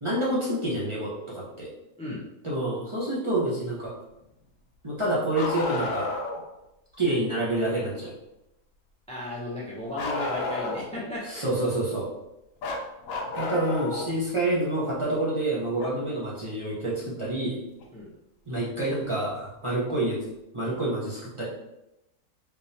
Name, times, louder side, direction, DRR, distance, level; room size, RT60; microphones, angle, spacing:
voice 1, 0.0-1.7 2.4-3.9 4.8-6.1 7.0-8.2 11.3-12.1 13.4-17.6 18.5-20.2 20.5-21.4, right 1 dB, 25° right, -7 dB, 0.7 m, -28 dB
Bark, 5.3-6.4 10.0-11.0 12.6-14.1 15.8-15.9 17.8-17.9 19.0-19.1, left 3 dB, 65° left, 0.9 m, -31 dB
voice 2, 9.1-11.4 17.9-18.1, left 1 dB, 10° left, -6 dB, 0.3 m, -35 dB
3.6 x 3.2 x 2.7 m, 0.89 s
omnidirectional pair, 1.6 m